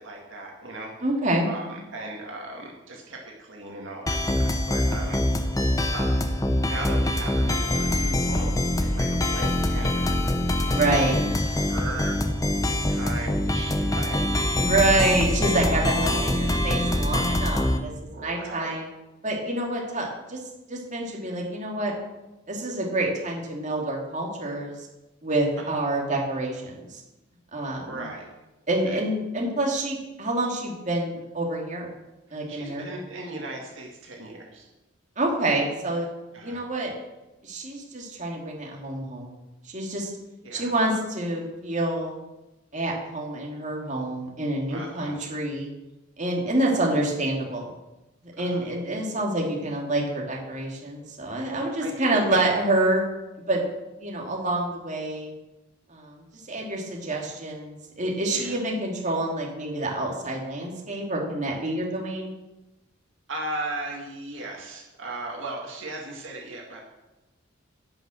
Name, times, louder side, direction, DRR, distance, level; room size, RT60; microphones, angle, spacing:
voice 1, 0.0-0.9 1.5-5.2 5.9-6.2 6.7-10.3 10.5-11.0 11.3-12.2 12.9-15.2 15.5-16.2 18.1-18.8 25.6-25.7 27.8-28.3 28.9-29.0 32.3-34.7 36.3-36.7 40.4-40.7 44.7-45.2 46.5-46.8 48.4-48.7 51.6-52.3 58.2-58.6 63.3-66.8, right 2 dB, 70° right, 0 dB, 2.1 m, -37 dB
voice 2, 1.0-1.5 10.7-11.2 14.5-17.9 18.2-18.9 19.2-20.4 20.7-21.9 22.5-24.7 25.2-27.0 27.5-28.0 28.7-31.9 32.3-32.8 35.2-36.1 36.4-36.9 37.4-39.4 39.7-40.1 40.5-42.2 42.7-45.7 46.2-47.7 48.4-53.0 53.4-53.6 54.0-55.3 55.9-62.3, right 2 dB, 35° right, -1 dB, 2.7 m, -27 dB
sound 1, 4.1-17.8, left 1 dB, 15° left, 0.9 m, -24 dB
16.0 x 6.1 x 6.5 m, 1.0 s
head